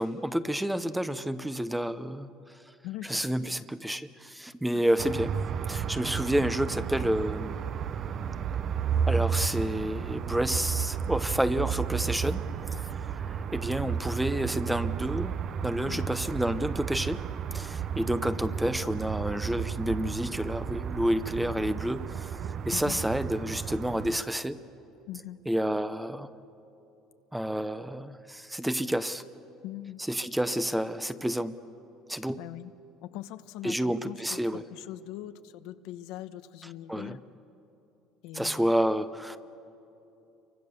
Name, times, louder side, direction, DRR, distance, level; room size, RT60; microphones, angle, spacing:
voice 1, 0.0-2.3 3.1-5.4 5.7-7.6 9.1-12.4 12.8-12.9 13.2-15.3 15.6-17.2 17.5-22.4 22.6-24.6 25.5-26.3 27.3-29.2 30.1-31.6 32.1-32.4 33.6-34.6 36.9-37.2 38.3-39.4, equal, 5° right, 13 dB, 0.7 m, -29 dB
voice 2, 2.8-3.5 15.9-16.1 22.7-23.0 25.1-25.4 29.6-30.0 32.4-32.7 33.0-37.2 38.2-38.7, left 14 dB, 80° left, 11 dB, 0.9 m, -41 dB
sound 1, 5.0-24.2, right 7 dB, 40° right, 0.6 m, -33 dB
29.0 x 24.5 x 6.9 m, 2.9 s
cardioid pair, 140°, 0 cm